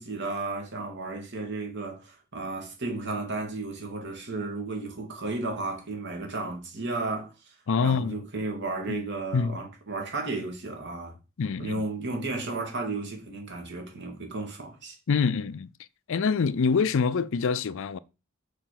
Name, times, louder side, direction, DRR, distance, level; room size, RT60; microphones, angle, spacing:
voice 1, 0.0-7.5 7.8-11.2 11.6-15.0, right 3 dB, 55° right, 2.6 m, -33 dB
voice 2, 7.7-8.2 8.9-9.1 9.3-9.6 11.4-11.8 15.1-15.7 16.1-18.0, left 5 dB, 65° left, 0.5 m, -25 dB
6.7 x 4.4 x 6.0 m
head